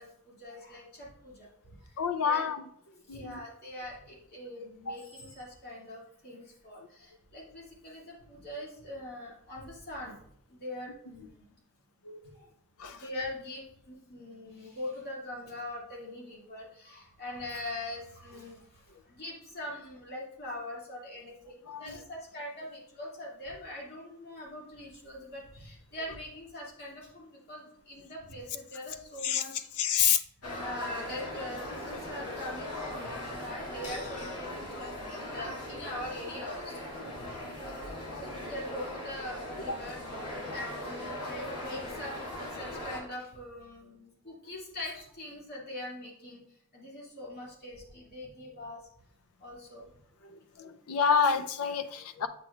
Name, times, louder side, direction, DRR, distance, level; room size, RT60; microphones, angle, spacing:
voice 1, 0.0-2.5 3.1-10.2 10.5-11.5 12.3-12.5 12.9-29.7 30.6-37.2 38.5-40.0 40.5-42.2 42.5-46.4 46.7-48.9 49.4-49.9, left 1 dB, 45° left, -4 dB, 2.2 m, -42 dB
voice 2, 2.0-2.7 3.1-3.4 4.9-5.0 12.0-12.3 12.8-13.0 21.7-22.0 29.2-29.4 29.8-30.2 38.1-38.5 39.7-39.8 50.2-52.3, left 7 dB, 70° left, 10 dB, 0.5 m, -29 dB
sound 1, 30.4-43.0, left 1 dB, 85° left, 1.8 m, -39 dB
7.9 x 6.0 x 2.3 m, 0.70 s
head